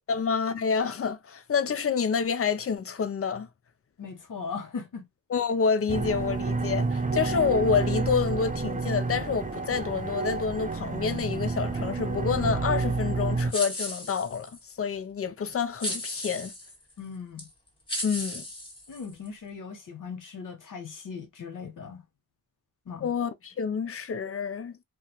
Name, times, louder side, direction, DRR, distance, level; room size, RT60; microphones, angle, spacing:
voice 1, 0.1-3.5 5.3-16.5 18.0-18.4 23.0-24.7, left 6 dB, 45° left, 0.5 m, -28 dB
voice 2, 4.0-5.1 17.0-17.5 18.9-22.0 22.9-23.1, left 5 dB, 85° left, 0.9 m, -39 dB
sound 1, 5.9-13.5, right 3 dB, 25° right, 0.5 m, -29 dB
sound 2, 13.5-14.6 15.8-16.8 17.4-17.5 17.9-19.3, left 1 dB, 15° left, 1.5 m, -35 dB
2.3 x 2.3 x 2.8 m
wide cardioid pair, 75°, 31 cm